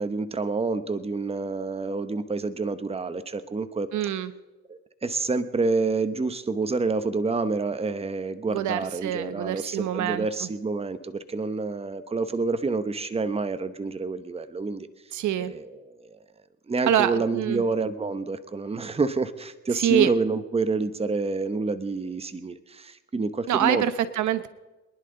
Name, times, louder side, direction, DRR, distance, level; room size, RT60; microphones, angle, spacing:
voice 1, 0.0-3.9 4.7-14.9 15.4-16.2 16.7-23.9, right 3 dB, 20° right, 11 dB, 1.0 m, -28 dB
voice 2, 3.9-4.3 8.5-10.5 15.1-15.5 16.9-17.6 19.8-20.1 23.5-24.5, right 10 dB, 75° right, 12 dB, 0.9 m, -25 dB
23.5 x 11.0 x 3.9 m, 1.1 s
cardioid pair, 90°, 30 cm